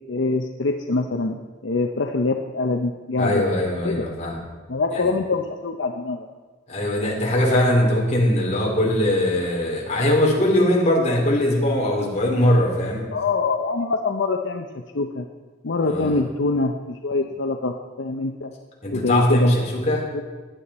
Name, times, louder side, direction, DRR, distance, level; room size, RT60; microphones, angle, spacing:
voice 1, 0.1-3.4 3.8-4.0 4.7-6.3 13.1-15.3 15.6-18.5 18.9-19.5 20.1-20.2, left 3 dB, 70° left, 4 dB, 0.7 m, -24 dB
voice 2, 3.2-4.4 4.9-5.1 6.7-13.0 15.8-16.2 18.8-20.0, left 1 dB, 35° left, -2 dB, 3.1 m, -21 dB
15.5 x 10.5 x 4.2 m, 1.3 s
head